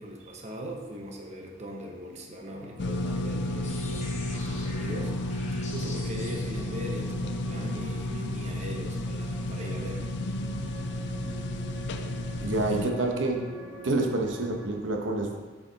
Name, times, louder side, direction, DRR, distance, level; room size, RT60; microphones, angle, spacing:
voice 1, 0.0-5.3 5.7-10.1, equal, 40° right, 1 dB, 0.9 m, -40 dB
sound 1, 2.5-14.7, left 2 dB, 20° right, 1.3 m, -44 dB
sound 2, 2.8-12.9, left 1 dB, 65° left, 0.4 m, -32 dB
sound 3, 3.6-7.4, left 3 dB, 40° left, 1.1 m, -45 dB
voice 2, 12.4-13.4 13.8-15.4, right 2 dB, 85° right, 2 dB, 0.9 m, -27 dB
7.7 x 4.8 x 3.9 m, 1.3 s
head